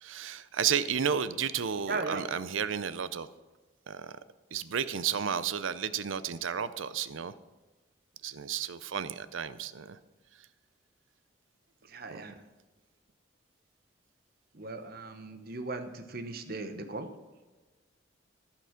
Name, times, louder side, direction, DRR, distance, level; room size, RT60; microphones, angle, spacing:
voice 1, 0.0-3.3 3.9-4.1 4.5-7.3 8.2-10.0 12.1-12.2, right 7 dB, 90° right, 15 dB, 0.6 m, -32 dB
voice 2, 1.9-2.2 11.9-12.3 14.5-17.1, right 3 dB, 50° right, 8 dB, 1.0 m, -37 dB
14.5 x 6.0 x 5.9 m, 1.2 s
head